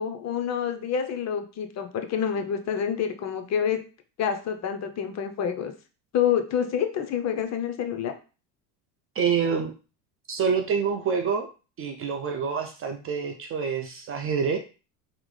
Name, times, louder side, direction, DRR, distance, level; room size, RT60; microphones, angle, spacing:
voice 1, 0.0-3.8 4.2-5.7 6.1-8.1, left 8 dB, 35° left, 7 dB, 0.5 m, -27 dB
voice 2, 9.2-9.7 10.3-11.5 11.8-14.6, right 6 dB, 30° right, 4 dB, 0.4 m, -26 dB
3.5 x 2.0 x 3.1 m, 0.34 s
hypercardioid pair, 80°, 48 cm